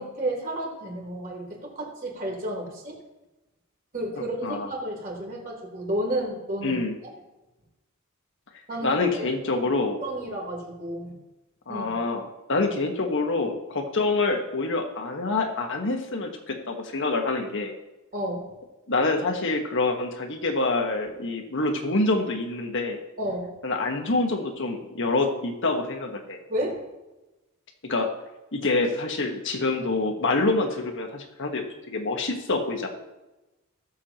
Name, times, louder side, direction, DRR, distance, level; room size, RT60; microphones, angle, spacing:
voice 1, 0.0-3.0 3.9-6.8 8.7-9.6 10.0-11.1 11.7-12.0 18.1-18.6 23.2-23.5 26.5-26.8, right 1 dB, 40° right, -3 dB, 3.6 m, -32 dB
voice 2, 6.6-6.9 8.8-10.0 11.7-17.7 18.9-23.0 23.6-26.4 27.8-28.1 28.5-32.9, left 3 dB, 60° left, 3 dB, 1.5 m, -26 dB
18.0 x 7.3 x 3.0 m, 1.0 s
head